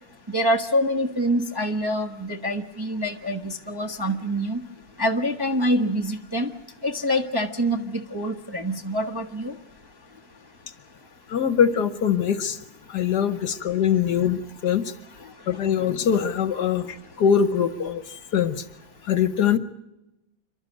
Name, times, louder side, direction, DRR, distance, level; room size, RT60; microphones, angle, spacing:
voice 1, 0.3-4.6 5.0-6.5 6.8-9.5, equal, 15° right, 2 dB, 0.9 m, -25 dB
voice 2, 11.3-12.6 12.9-14.9 15.5-18.6 19.1-19.6, left 8 dB, 65° left, 12 dB, 1.4 m, -23 dB
28.5 x 12.0 x 9.3 m, 0.94 s
omnidirectional pair, 2.1 m